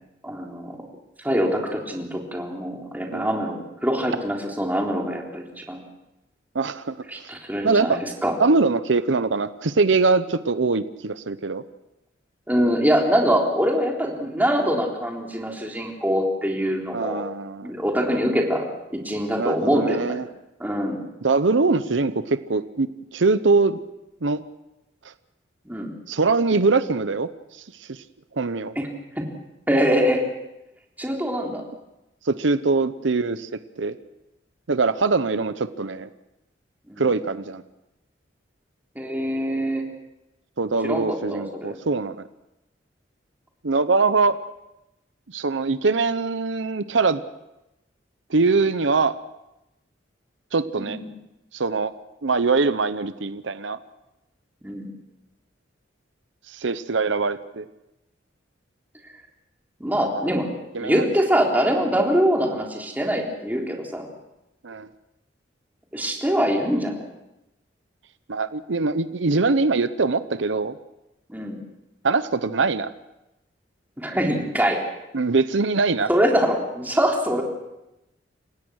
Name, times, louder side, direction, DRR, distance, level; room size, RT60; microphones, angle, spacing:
voice 1, 0.2-0.8 1.2-5.8 7.1-8.4 12.5-17.2 17.6-20.2 20.6-21.0 25.7-25.9 28.8-28.9 29.2-29.3 29.7-30.2 31.0-31.6 36.9-37.1 39.0-39.8 40.8-41.8 50.7-51.0 54.6-54.9 59.8-60.5 60.8-64.1 65.9-67.0 71.3-71.6 74.0-74.8 76.1-77.4, equal, 10° right, 0 dB, 3.7 m, -24 dB
voice 2, 6.5-6.9 7.6-8.0 8.4-11.6 16.9-17.7 19.4-20.3 21.2-23.8 24.2-24.4 26.1-27.3 27.9-28.0 28.4-28.7 32.2-33.5 33.8-33.9 34.7-36.1 37.0-37.6 40.6-42.3 43.6-44.4 45.3-47.2 48.3-49.2 50.5-51.0 51.5-51.9 52.2-53.8 56.5-57.7 60.0-60.3 60.7-61.1 64.6-64.9 68.3-70.8 72.0-72.9 75.1-76.1, right 3 dB, 85° right, 13 dB, 0.8 m, -22 dB
29.0 x 17.0 x 6.3 m, 0.93 s
head